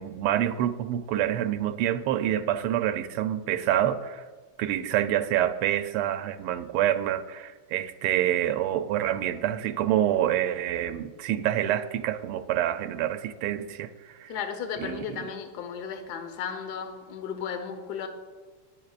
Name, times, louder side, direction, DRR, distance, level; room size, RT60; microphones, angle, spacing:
voice 1, 0.0-4.2 4.6-14.3 14.8-15.2, right 11 dB, 85° right, 10 dB, 1.5 m, -27 dB
voice 2, 14.3-18.1, left 7 dB, 55° left, 7 dB, 1.4 m, -34 dB
20.5 x 8.3 x 2.4 m, 1.4 s
omnidirectional pair, 2.4 m